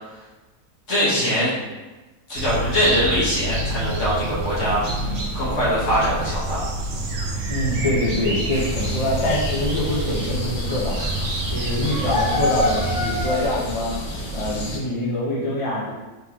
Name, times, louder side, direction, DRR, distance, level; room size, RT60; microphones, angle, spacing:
voice 1, 0.9-1.5 2.3-4.8 5.3-6.6, equal, 55° left, -8 dB, 1.6 m, -22 dB
sound 1, 2.3-13.3, right 2 dB, 65° right, 0.9 m, -28 dB
sound 2, 3.8-13.5, equal, 45° right, 0.6 m, -34 dB
voice 2, 7.5-11.0 11.5-13.9 14.3-15.9, left 1 dB, 30° left, -5 dB, 0.6 m, -25 dB
sound 3, 8.5-14.8, left 1 dB, 75° left, 1.3 m, -28 dB
3.7 x 3.6 x 2.9 m, 1.2 s
omnidirectional pair, 1.6 m